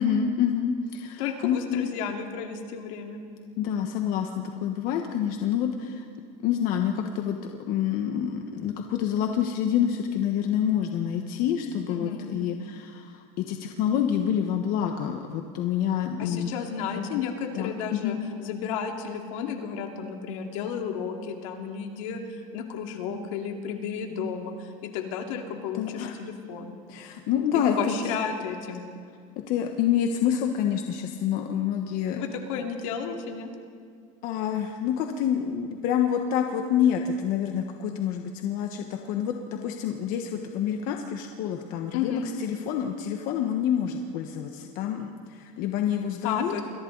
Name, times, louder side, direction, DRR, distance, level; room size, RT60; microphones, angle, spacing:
voice 1, 0.0-1.9 3.6-6.0 6.4-7.4 7.7-16.5 17.0-17.2 17.5-18.2 25.7-26.2 26.9-27.8 28.0-28.1 29.5-32.2 34.2-46.5, left 9 dB, 60° left, 4 dB, 1.4 m, -27 dB
voice 2, 1.2-3.2 11.9-12.3 16.2-26.7 27.8-28.8 32.2-33.5 41.9-42.3 46.2-46.6, left 7 dB, 80° left, 3 dB, 2.6 m, -33 dB
28.5 x 22.5 x 4.1 m, 2.1 s
supercardioid pair, 130°, 16 cm